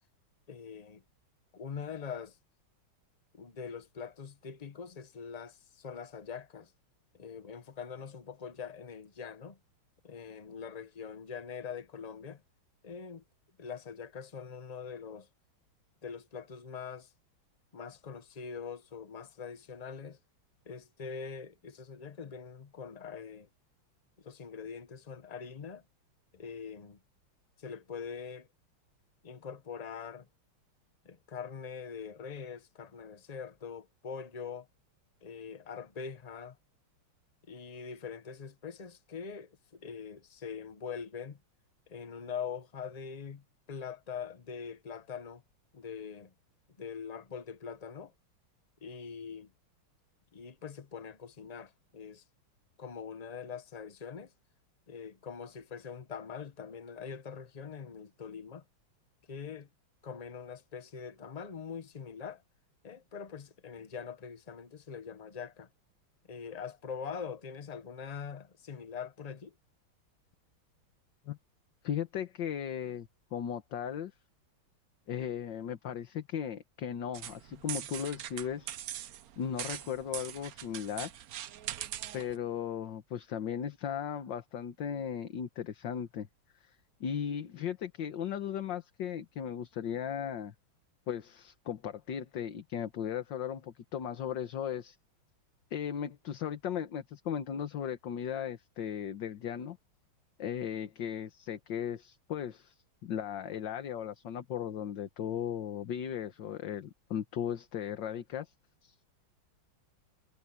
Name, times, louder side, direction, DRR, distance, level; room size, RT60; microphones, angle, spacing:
voice 1, 0.5-1.0 1.5-2.4 3.3-6.7 7.1-9.6 10.0-12.4 12.8-13.2 13.6-15.3 16.0-17.1 17.7-20.2 20.7-23.5 24.2-25.8 26.3-27.0 27.6-28.5 29.2-30.3 31.0-34.7 35.2-36.6 37.5-41.4 41.9-45.4 45.7-46.3 46.8-48.1 48.8-49.5 50.3-52.2 52.8-54.3 54.9-58.6 59.3-59.7 60.0-62.4 62.8-65.7 66.3-69.5, left 6 dB, 45° left, 0.5 m, -43 dB
voice 2, 71.8-74.1 75.1-78.7 79.4-81.2 82.1-86.3 86.6-86.8 87.0-90.5 91.1-95.0 95.7-99.8 100.4-108.5 108.8-109.0, left 9 dB, 65° left, 1.8 m, -37 dB
sound 1, 77.1-82.4, right 12 dB, 70° right, 0.9 m, -41 dB
omnidirectional pair, 2.3 m